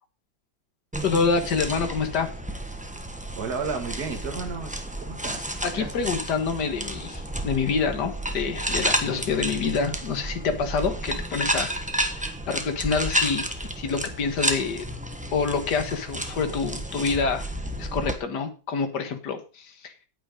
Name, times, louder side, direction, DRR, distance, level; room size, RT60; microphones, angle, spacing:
sound 1, 0.9-18.2, right 1 dB, 5° right, 0.8 m, -31 dB
voice 1, 1.0-2.3 5.6-11.7 12.2-13.5 13.8-14.8 15.3-17.4 17.8-19.9, left 5 dB, 60° left, 7 dB, 2.1 m, -27 dB
voice 2, 3.4-6.1 9.5-9.8, right 5 dB, 50° right, 4 dB, 2.4 m, -34 dB
9.2 x 8.8 x 5.3 m, 0.33 s
omnidirectional pair, 2.2 m